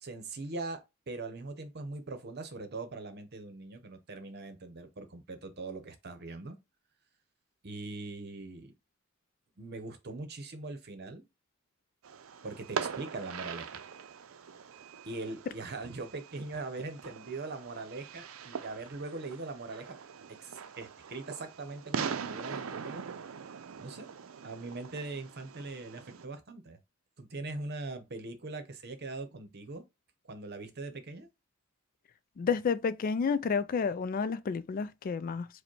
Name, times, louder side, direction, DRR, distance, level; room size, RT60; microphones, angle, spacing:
voice 1, 0.0-6.6 7.6-8.7 9.6-11.3 12.4-13.8 15.1-20.0 20.4-23.1 23.8-24.1 24.4-26.8 27.2-29.8 30.3-31.3, right 3 dB, 50° right, 0.9 m, -41 dB
Fireworks, 12.0-26.2, right 6 dB, 80° right, 0.5 m, -42 dB
voice 2, 32.4-35.5, left 5 dB, 45° left, 0.3 m, -30 dB
4.9 x 2.2 x 4.5 m
head